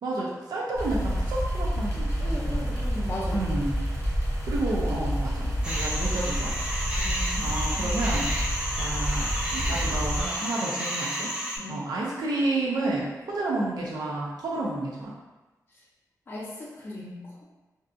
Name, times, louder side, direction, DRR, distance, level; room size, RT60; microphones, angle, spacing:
voice 1, 0.0-2.7 3.3-3.8 4.4-6.6 6.9-8.3 8.8-11.3 11.7-15.1, right 2 dB, 85° right, -4 dB, 0.4 m, -31 dB
sound 1, 0.7-10.2, equal, 50° right, 0.8 m, -29 dB
voice 2, 2.2-3.4 7.0-8.1 11.6-11.8 16.3-17.4, left 1 dB, 35° left, -6 dB, 0.5 m, -37 dB
sound 2, 5.6-11.6, equal, 15° right, 0.5 m, -31 dB
2.6 x 2.3 x 2.4 m, 1.1 s
wide cardioid pair, 165°, 7 cm